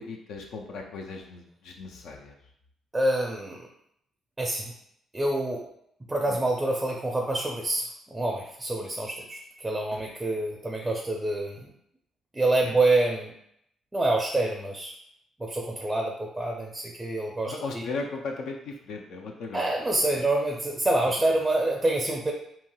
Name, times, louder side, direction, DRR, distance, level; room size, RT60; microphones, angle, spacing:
voice 1, 0.0-2.4 6.3-6.4 12.6-12.7 17.4-19.7 20.1-20.2, left 3 dB, 75° left, 1 dB, 0.4 m, -37 dB
voice 2, 2.9-3.7 4.4-4.7 5.1-5.6 6.1-11.7 12.3-13.3 13.9-14.9 15.4-17.8 19.5-22.3, right 2 dB, 15° right, 0 dB, 0.4 m, -27 dB
2.9 x 2.7 x 2.3 m, 0.73 s
cardioid pair, 90°, 0 cm